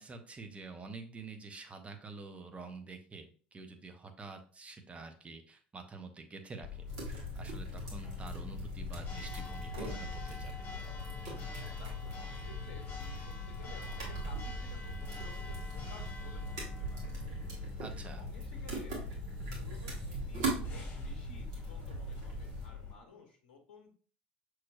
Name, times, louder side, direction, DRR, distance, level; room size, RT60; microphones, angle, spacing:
voice 1, 0.0-10.5 17.8-18.2, right 4 dB, 25° right, 6 dB, 0.7 m, -48 dB
Church bell, 6.6-22.9, left 7 dB, 40° left, 1.3 m, -44 dB
sound 1, 6.9-22.7, right 3 dB, 55° right, 1.6 m, -41 dB
voice 2, 11.6-17.1 18.0-19.0 19.6-23.9, left 4 dB, 65° left, 2 dB, 0.8 m, -56 dB
5.9 x 3.1 x 2.3 m, 0.41 s
figure-of-eight pair, 65°, 6 cm